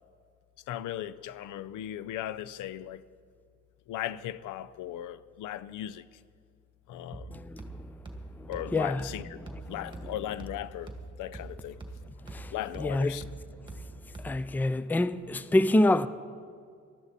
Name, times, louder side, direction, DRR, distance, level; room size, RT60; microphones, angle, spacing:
voice 1, 0.7-3.0 3.9-6.0 6.9-7.4 8.5-9.4 9.7-10.9 11.2-11.8 12.5-13.2, left 12 dB, 85° left, 0.6 m, -37 dB
sound 1, 7.1-14.6, right 2 dB, 15° right, 1.9 m, -44 dB
voice 2, 7.3-8.0 8.4-9.1 9.3-10.1 12.3-13.3 14.2-16.1, left 1 dB, 5° left, 0.4 m, -28 dB
19.0 x 12.5 x 4.1 m
cardioid pair, 90°, 30 cm